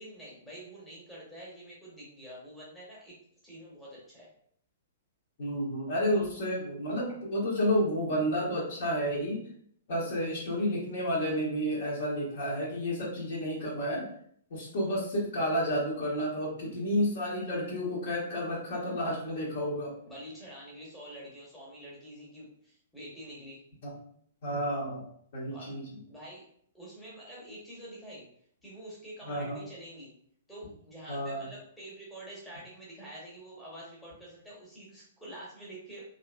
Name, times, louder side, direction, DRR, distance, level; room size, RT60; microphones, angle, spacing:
voice 1, 0.0-3.1 3.4-4.3 6.1-6.2 20.0-23.6 25.5-25.7 26.1-26.5 26.7-28.3 28.6-30.1 30.5-36.0, right 1 dB, 5° left, -6 dB, 0.9 m, -47 dB
voice 2, 5.4-9.4 9.9-14.1 14.5-19.9 23.8-23.9 24.4-25.0 25.3-25.8 29.3-29.6 31.1-31.4, equal, 50° left, -4 dB, 1.0 m, -31 dB
2.7 x 2.5 x 2.3 m, 0.64 s
figure-of-eight pair, 110°, 0 cm